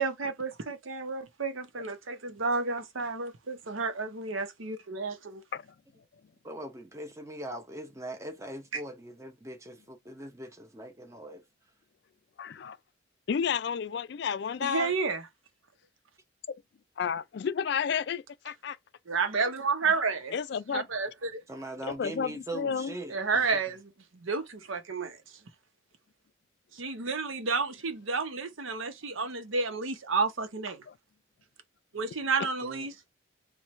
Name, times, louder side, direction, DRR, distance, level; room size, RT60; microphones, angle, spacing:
voice 1, 0.0-5.4 8.7-8.8 14.6-15.3 19.1-20.4 20.7-21.4 23.1-25.2 26.7-30.9 31.9-32.9, right 4 dB, 85° right, 0.9 m, -31 dB
voice 2, 6.4-11.4 21.5-23.4 32.6-32.8, right 1 dB, 15° right, 0.7 m, -41 dB
voice 3, 12.4-12.8 13.3-14.9 16.5-16.6 17.0-18.8 20.3-20.9 21.8-22.9 30.9-31.0, left 7 dB, 55° left, 0.3 m, -31 dB
4.4 x 2.3 x 3.1 m
head